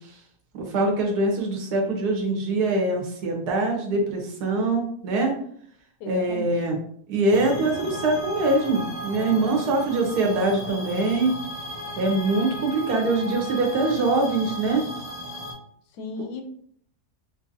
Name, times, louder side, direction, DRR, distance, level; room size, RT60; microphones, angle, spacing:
voice 1, 0.5-5.4 6.1-6.8 7.1-11.3 12.0-14.8, right 2 dB, 75° right, 0 dB, 1.3 m, -23 dB
voice 2, 6.0-6.5 9.2-9.9 15.9-16.4, left 4 dB, 80° left, 5 dB, 1.1 m, -37 dB
sound 1, 7.3-15.5, left 1 dB, 25° left, 0.6 m, -35 dB
3.8 x 2.6 x 2.6 m, 0.64 s
omnidirectional pair, 1.8 m